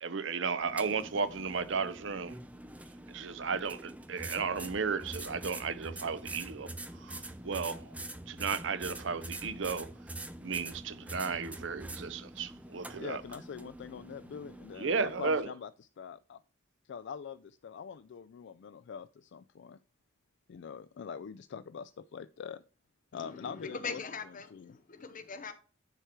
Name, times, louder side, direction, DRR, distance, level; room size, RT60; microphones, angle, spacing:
voice 1, 0.0-2.4 3.1-6.7 7.0-7.8 8.3-9.9 10.4-13.2 14.8-15.5, right 5 dB, 70° right, 0.7 m, -34 dB
sound 1, 0.6-15.4, right 1 dB, 10° right, 0.7 m, -45 dB
voice 2, 13.0-16.4 16.8-19.8 20.5-22.6 23.1-24.0 24.5-24.8, left 7 dB, 65° left, 0.4 m, -44 dB
voice 3, 23.1-25.5, left 5 dB, 45° left, 0.8 m, -41 dB
10.0 x 4.6 x 4.5 m
head